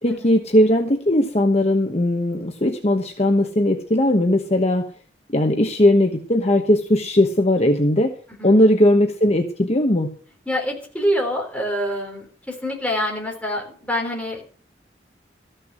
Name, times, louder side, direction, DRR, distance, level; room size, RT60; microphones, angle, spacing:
voice 1, 0.0-4.9 5.3-8.1 8.4-10.1, left 1 dB, 40° left, 4 dB, 1.1 m, -18 dB
voice 2, 10.5-14.4, equal, 5° left, 0 dB, 3.9 m, -26 dB
14.0 x 6.7 x 7.6 m, 0.43 s
head